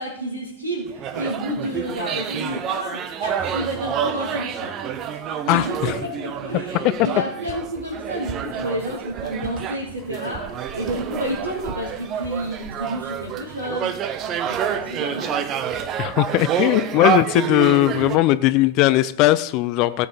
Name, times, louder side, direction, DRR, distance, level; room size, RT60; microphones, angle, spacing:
voice 1, 0.0-4.8 5.5-5.7 6.0-14.2 14.4-15.5, equal, 80° right, -6 dB, 3.3 m, -30 dB
sound 1, 0.9-18.2, right 8 dB, 35° right, 1.0 m, -28 dB
voice 2, 5.5-5.9 16.0-20.1, left 16 dB, 40° left, 15 dB, 0.5 m, -19 dB
17.0 x 6.6 x 5.2 m, 0.76 s
figure-of-eight pair, 90°, 0 cm